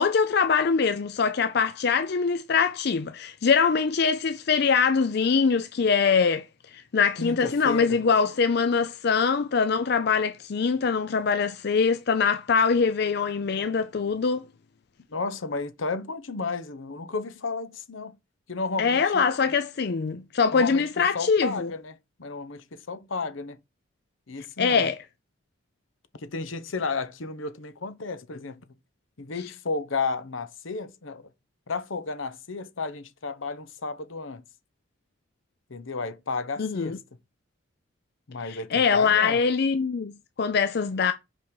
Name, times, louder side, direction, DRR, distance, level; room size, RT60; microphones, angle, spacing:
voice 1, 0.0-6.5 6.7-14.4 18.8-21.7 24.6-25.0 36.6-37.0 38.4-41.1, left 5 dB, 55° left, 0.5 m, -23 dB
voice 2, 7.2-8.0 15.1-18.2 18.5-19.5 20.5-21.9 22.2-23.6 24.3-24.9 26.2-28.6 29.2-31.3 31.7-34.4 35.7-37.0 38.3-39.4, left 3 dB, 80° left, 0.9 m, -32 dB
5.5 x 5.3 x 4.7 m
head